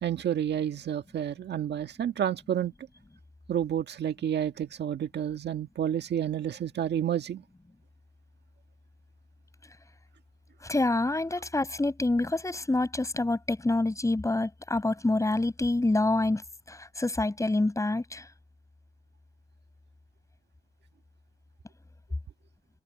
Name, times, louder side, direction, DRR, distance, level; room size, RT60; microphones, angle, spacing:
voice 1, 0.0-2.7 3.5-7.4, right 10 dB, 60° right, 1.6 m, -30 dB
voice 2, 10.6-16.4 16.7-18.3, left 2 dB, 15° left, 7.4 m, -27 dB
open air
cardioid pair, 90°, 20 cm